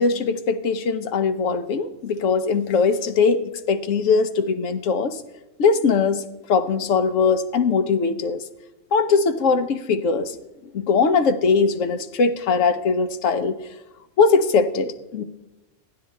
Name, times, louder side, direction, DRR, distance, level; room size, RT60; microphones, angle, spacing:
voice 1, 0.0-5.2 5.6-6.2 6.5-8.4 8.9-10.4 10.7-13.6 14.2-15.2, left 5 dB, 90° left, 9 dB, 1.1 m, -20 dB
15.0 x 11.5 x 3.2 m, 1.0 s
omnidirectional pair, 1.3 m